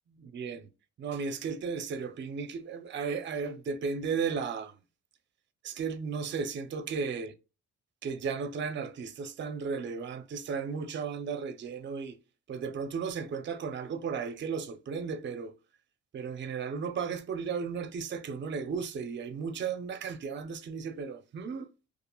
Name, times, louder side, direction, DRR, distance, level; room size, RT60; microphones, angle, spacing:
voice 1, 0.2-0.7 1.0-4.8 5.6-7.3 8.0-12.2 12.5-15.5 16.1-21.7, right 5 dB, 40° right, 0.5 m, -35 dB
2.8 x 2.4 x 2.3 m
cardioid pair, 90°, 30 cm